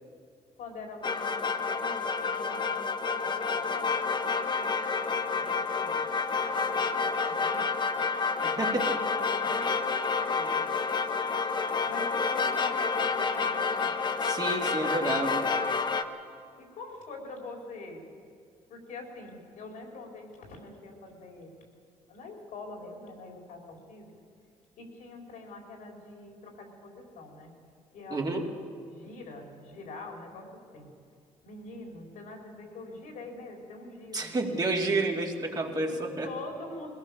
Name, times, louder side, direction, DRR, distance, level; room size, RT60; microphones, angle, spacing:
voice 1, 0.6-2.7 3.1-4.7 4.9-6.1 6.4-8.0 8.5-8.8 9.1-10.7 11.9-13.9 16.6-18.0 18.7-21.6 22.1-24.1 24.8-27.5 27.9-28.5 28.8-30.9 31.4-34.3 35.6-36.9, left 3 dB, 80° left, 1 dB, 4.4 m, -44 dB
sound 1, 1.0-16.0, left 5 dB, 35° left, 1.1 m, -29 dB
voice 2, 8.4-9.0 14.2-15.5 28.1-28.5 34.1-36.3, right 2 dB, 30° right, 0 dB, 2.5 m, -30 dB
21.5 x 17.0 x 7.1 m, 2.2 s
cardioid pair, 90°, 13 cm